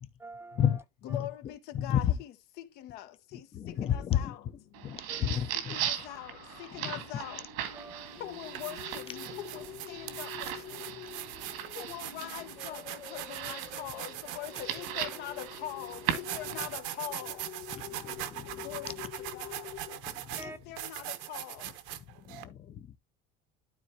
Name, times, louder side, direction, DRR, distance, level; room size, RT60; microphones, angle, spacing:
voice 1, 0.2-0.8 1.1-1.3 5.1-5.4 7.7-8.3 11.7-11.9 18.7-18.8 20.4-20.6, right 3 dB, 15° right, 0.5 m, -47 dB
voice 2, 1.0-4.5 5.2-7.5 8.2-10.9 11.7-17.6 18.6-19.8 20.3-21.7, left 13 dB, 60° left, 1.1 m, -43 dB
voice 3, 1.7-2.1 3.5-4.3 4.8-5.9 6.8-6.9 17.7-18.7 20.0-20.4 22.3-22.9, left 10 dB, 30° left, 0.8 m, -31 dB
sound 1, 3.5-20.0, left 11 dB, 85° left, 1.6 m, -48 dB
sound 2, 4.7-16.7, right 11 dB, 90° right, 2.1 m, -39 dB
sound 3, 7.6-7.8 8.3-22.4, right 14 dB, 70° right, 1.1 m, -42 dB
12.0 x 4.3 x 2.9 m
cardioid pair, 155°, 19 cm